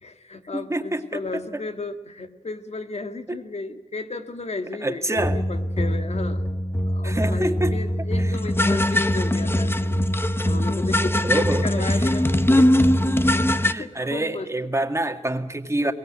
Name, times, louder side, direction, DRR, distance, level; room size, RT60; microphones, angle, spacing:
voice 1, 0.0-6.4 6.9-10.0 10.4-12.7 13.2-14.5, left 3 dB, 65° left, 8 dB, 1.8 m, -34 dB
voice 2, 0.5-1.0 1.3-1.4 3.3-3.4 4.8-5.4 7.0-7.8 8.2-8.3 11.2-12.1 13.6-15.9, right 1 dB, 25° right, 6 dB, 2.0 m, -27 dB
sound 1, 5.2-13.7, left 1 dB, 20° left, 0.9 m, -21 dB
22.0 x 19.0 x 8.8 m, 1.0 s
wide cardioid pair, 100°, 12 cm